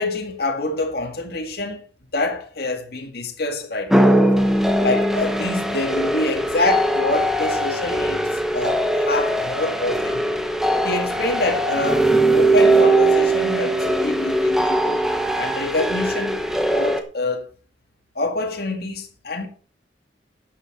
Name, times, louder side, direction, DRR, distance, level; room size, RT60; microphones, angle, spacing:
voice 1, 0.0-1.8 2.1-4.2 4.8-10.4 10.8-15.0 15.4-16.4 16.7-17.5 18.2-19.5, left 2 dB, 60° left, 2.0 m, -26 dB
sound 1, 3.9-17.0, right 1 dB, ahead, 1.0 m, -20 dB
11.5 x 8.4 x 4.2 m
head